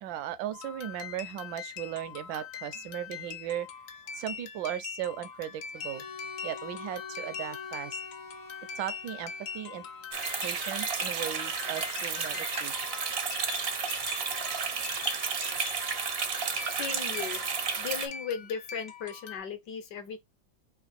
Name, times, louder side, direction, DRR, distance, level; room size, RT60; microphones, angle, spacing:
voice 1, 0.0-3.7 4.1-6.0 6.4-8.0 8.8-9.9 10.4-12.7, right 11 dB, 75° right, 1.3 m, -37 dB
sound 1, 0.5-19.4, left 7 dB, 90° left, 0.7 m, -43 dB
Bowed string instrument, 5.7-10.7, left 5 dB, 30° left, 0.4 m, -45 dB
sound 2, 10.1-18.1, right 5 dB, 60° right, 0.6 m, -32 dB
voice 2, 16.7-17.4 17.8-20.2, left 7 dB, 65° left, 1.2 m, -36 dB
5.0 x 2.4 x 4.0 m
omnidirectional pair, 2.2 m